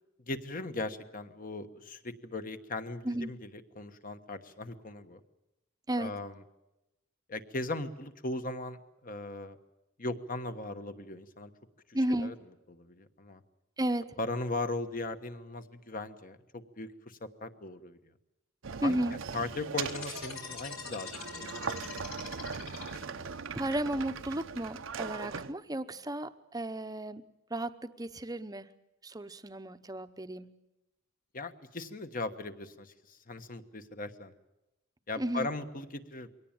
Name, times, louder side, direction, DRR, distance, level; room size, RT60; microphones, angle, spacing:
voice 1, 0.3-3.5 3.7-5.2 6.0-6.4 7.3-9.6 10.0-11.5 12.2-12.3 12.8-13.4 14.2-18.0 18.8-19.0 19.3-21.8 31.3-34.3 35.1-36.3, left 2 dB, 40° left, 9 dB, 1.3 m, -38 dB
voice 2, 11.9-12.3 13.8-14.2 18.8-19.2 23.5-27.2 27.5-28.7 29.0-30.5 35.2-35.5, right 1 dB, 20° right, 11 dB, 0.8 m, -33 dB
sound 1, 18.6-25.5, right 5 dB, 65° right, 0.8 m, -40 dB
sound 2, 19.8-23.3, left 6 dB, 75° left, 3.7 m, -43 dB
23.0 x 18.0 x 8.9 m, 0.96 s
head